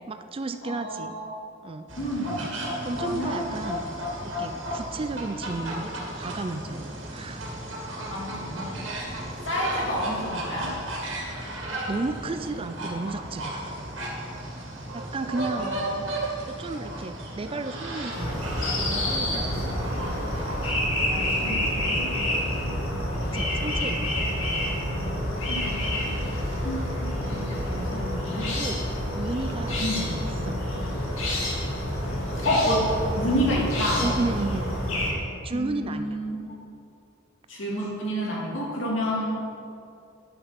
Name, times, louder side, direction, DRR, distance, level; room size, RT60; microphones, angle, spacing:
voice 1, 0.1-1.1 1.6-1.9 2.8-3.8 4.4-7.4 11.9-13.8 14.9-15.7 16.5-18.4 18.8-19.7 23.3-24.1 28.4-28.8 29.1-29.8 30.4-30.6 34.0-34.7 35.4-36.2, right 3 dB, 30° right, 9 dB, 0.4 m, -33 dB
voice 2, 0.6-1.3 2.0-2.7 3.0-3.4 7.9-8.8 9.4-10.7 15.5-16.0 20.9-22.1 24.2-24.3 25.5-26.2 26.6-28.5 29.8-30.1 32.4-32.9 33.1-34.0 35.5-36.4 37.5-39.4, equal, 70° left, -4 dB, 2.6 m, -30 dB
sound 1, 1.9-20.7, right 1 dB, 75° right, 2.3 m, -34 dB
sound 2, 18.1-35.1, left 1 dB, 90° left, 2.1 m, -28 dB
10.5 x 6.7 x 5.9 m, 2.6 s
head